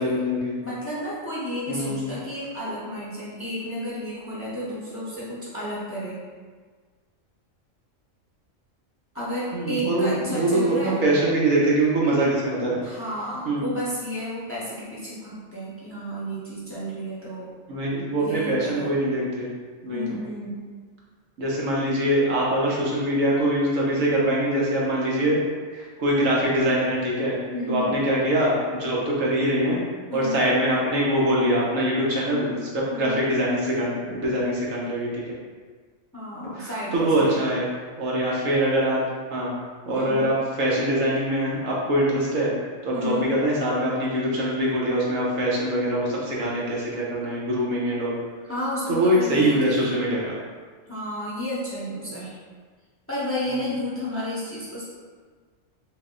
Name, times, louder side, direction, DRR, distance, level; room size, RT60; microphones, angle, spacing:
voice 1, 0.0-0.6 1.7-2.1 9.5-12.8 13.4-13.7 17.7-19.5 19.8-20.2 21.4-25.4 25.7-27.4 27.7-29.8 30.1-35.2 36.6-37.7 38.0-39.0 39.3-39.5 39.9-42.5 42.8-48.2 48.9-50.4 53.5-53.7, right 1 dB, 75° right, -5 dB, 1.3 m, -23 dB
voice 2, 0.6-6.2 9.1-11.0 12.8-17.5 18.2-18.9 19.9-20.6 27.5-28.1 30.1-30.5 32.9-33.2 36.1-37.4 39.9-40.3 42.9-43.3 48.5-49.9 50.9-52.4 53.1-54.8, equal, 15° left, -8 dB, 0.6 m, -32 dB
3.9 x 2.1 x 3.7 m, 1.5 s
omnidirectional pair, 1.4 m